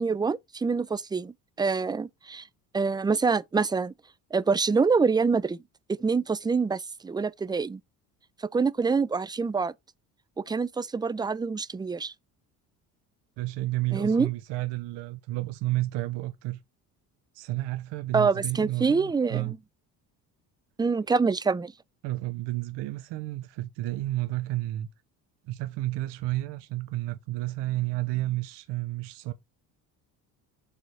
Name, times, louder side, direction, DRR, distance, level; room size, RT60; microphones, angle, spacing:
voice 1, 0.0-2.5 2.7-3.9 4.3-5.6 6.0-7.8 8.5-9.7 10.4-12.1 13.9-14.3 18.1-19.6 20.8-21.7, right 4 dB, 10° right, 0.4 m, -26 dB
voice 2, 13.4-16.6 17.3-19.5 22.0-24.9 25.5-29.3, right 17 dB, 70° right, 0.9 m, -31 dB
6.7 x 3.5 x 4.7 m
supercardioid pair, 75°, 44 cm